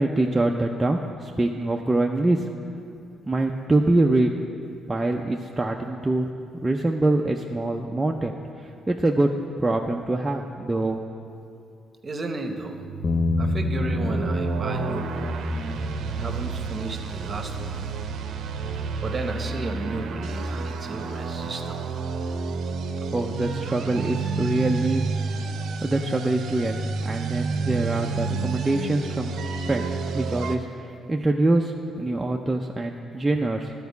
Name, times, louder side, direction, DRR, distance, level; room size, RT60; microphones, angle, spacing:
voice 1, 0.0-2.5 3.3-4.3 4.9-6.3 6.6-9.3 9.6-11.0 23.1-25.0 25.8-29.3 29.7-33.7, right 2 dB, 15° right, 1 dB, 0.5 m, -24 dB
voice 2, 12.0-12.8 13.4-15.3 16.1-17.9 19.0-21.9, right 3 dB, 35° right, 5 dB, 0.9 m, -33 dB
sound 1, 12.7-30.6, right 4 dB, 75° right, 0.6 m, -30 dB
Bass guitar, 13.0-19.3, left 4 dB, 40° left, 0.4 m, -31 dB
11.0 x 4.7 x 8.1 m, 2.4 s
cardioid pair, 90°, 0 cm